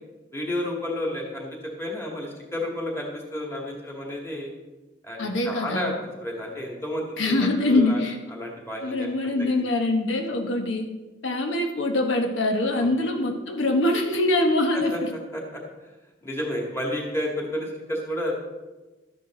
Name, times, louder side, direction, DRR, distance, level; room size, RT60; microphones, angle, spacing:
voice 1, 0.3-1.5 1.8-4.5 5.0-7.3 7.6-8.0 8.3-9.7 13.0-13.1 14.7-15.0 15.3-15.6 16.2-18.4, left 1 dB, 15° left, -1 dB, 2.2 m, -31 dB
voice 2, 5.2-5.9 7.2-8.2 8.8-10.9 11.2-15.1, left 2 dB, 85° left, 4 dB, 1.2 m, -24 dB
13.0 x 10.0 x 3.8 m, 1.2 s
head